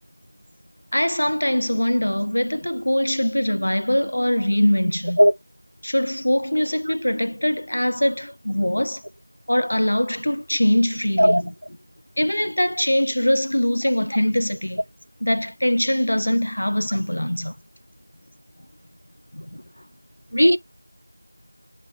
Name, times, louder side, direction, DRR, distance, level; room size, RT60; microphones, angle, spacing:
voice 1, 0.9-5.2 5.8-9.0 9.5-11.4 12.2-14.8 15.2-17.5 19.3-19.6, left 1 dB, 50° left, 0.4 m, -22 dB
voice 2, 5.2-5.3 6.9-7.0 11.2-11.4 20.3-20.6, equal, 80° right, 0.3 m, -15 dB
7.2 x 2.9 x 2.4 m
figure-of-eight pair, 175°, 0 cm